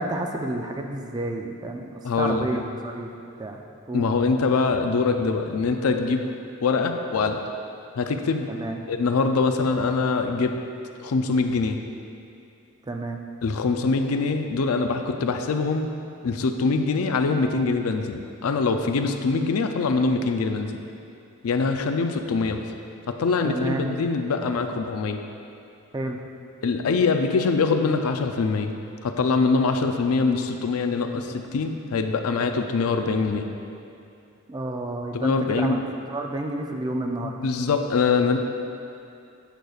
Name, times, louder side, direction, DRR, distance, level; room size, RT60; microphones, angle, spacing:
voice 1, 0.0-3.1 3.4-3.6 3.9-4.1 8.5-8.8 12.9-13.2 23.4-24.0 25.9-26.2 34.5-35.8 36.1-37.4, right 1 dB, 20° right, 3 dB, 0.3 m, -30 dB
voice 2, 2.0-2.6 3.9-6.3 6.6-7.4 8.0-8.5 8.9-10.6 11.0-11.8 13.4-15.9 16.2-20.8 21.4-22.6 23.1-25.2 26.6-28.7 29.0-33.5 35.1-35.8 37.2-38.4, left 4 dB, 75° left, 6 dB, 0.4 m, -23 dB
9.0 x 6.4 x 2.4 m, 2.6 s
head